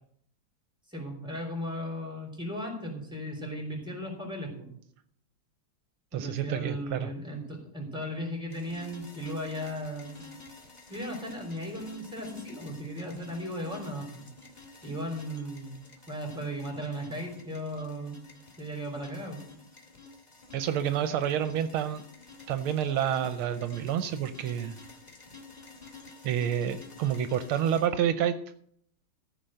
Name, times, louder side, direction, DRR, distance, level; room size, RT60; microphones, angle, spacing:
voice 1, 0.9-4.7 6.1-10.2 10.9-14.2 14.8-15.7 16.1-18.2 18.6-19.4, equal, ahead, 1 dB, 3.5 m, -36 dB
voice 2, 6.1-7.1 20.5-22.0 22.5-24.8 26.2-28.4, right 9 dB, 80° right, 10 dB, 1.5 m, -28 dB
sound 1, 8.5-27.9, left 4 dB, 20° left, 1.5 m, -50 dB
14.5 x 5.2 x 7.6 m, 0.66 s
omnidirectional pair, 2.4 m